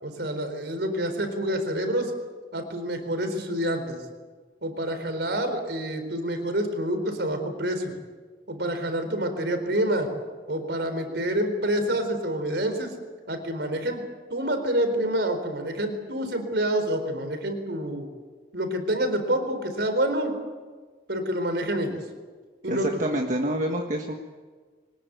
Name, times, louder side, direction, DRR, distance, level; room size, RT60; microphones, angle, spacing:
voice 1, 0.0-2.1 2.5-4.0 4.6-8.0 8.5-10.1 10.5-12.9 13.3-14.0 14.3-18.1 18.5-20.3 21.1-22.0 22.6-23.0, right 1 dB, 75° right, 7 dB, 4.2 m, -27 dB
voice 2, 22.7-24.1, right 1 dB, 45° right, 1 dB, 1.6 m, -27 dB
23.5 x 20.0 x 8.2 m, 1.5 s
head